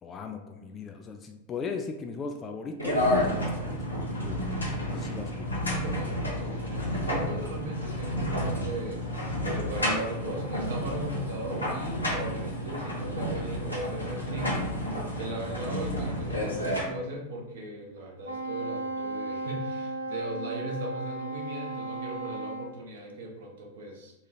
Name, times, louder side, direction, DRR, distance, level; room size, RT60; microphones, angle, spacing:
voice 1, 0.0-3.8 4.1-4.5 4.9-5.6, left 5 dB, 25° left, 5 dB, 0.3 m, -38 dB
sound 1, 2.8-16.8, equal, 80° left, 0.8 m, -31 dB
voice 2, 5.7-9.0 9.5-14.6 15.1-24.1, right 1 dB, 60° right, 0 dB, 0.9 m, -37 dB
Wind instrument woodwind instrument, 18.2-22.7, right 2 dB, 75° right, 0.4 m, -35 dB
4.2 x 2.4 x 3.1 m, 0.98 s
figure-of-eight pair, 90°, 0 cm